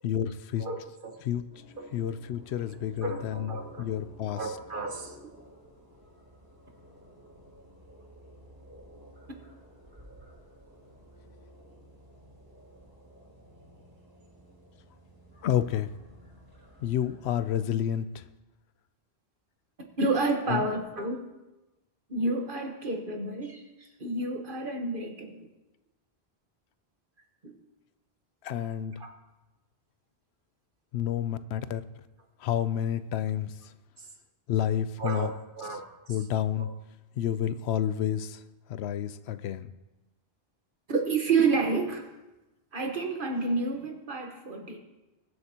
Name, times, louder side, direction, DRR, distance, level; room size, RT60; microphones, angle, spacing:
voice 1, 0.0-0.7 1.2-1.4 1.9-4.6 15.4-15.9 16.8-18.3 20.5-20.6 28.4-29.0 30.9-31.8 32.4-33.7 34.5-35.3 35.7-35.8 36.1-36.8 37.2-38.4 38.7-39.7, left 10 dB, 85° left, 13 dB, 0.8 m, -30 dB
voice 2, 0.6-1.2 1.8-1.9 3.0-3.9 4.4-5.1 20.0-21.2 22.1-25.5 27.4-27.6 29.0-29.1 35.0-35.8 36.6-36.7 40.9-42.1 42.7-44.8, right 3 dB, 55° right, 3 dB, 1.5 m, -30 dB
sound 1, 1.5-17.7, equal, 20° right, 3.7 m, -53 dB
21.5 x 7.9 x 2.9 m, 1.0 s
omnidirectional pair, 1.1 m